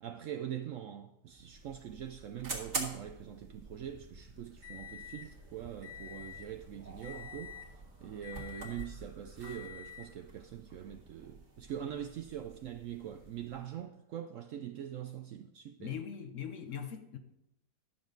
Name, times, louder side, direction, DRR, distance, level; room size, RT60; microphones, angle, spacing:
voice 1, 0.0-16.0, right 10 dB, 70° right, 0.8 m, -43 dB
sound 1, 1.2-13.7, right 1 dB, 45° right, 2.0 m, -46 dB
sound 2, 3.5-13.6, right 2 dB, 25° right, 1.7 m, -60 dB
voice 2, 15.8-17.2, left 8 dB, 60° left, 0.9 m, -41 dB
11.5 x 7.0 x 3.9 m
omnidirectional pair, 1.7 m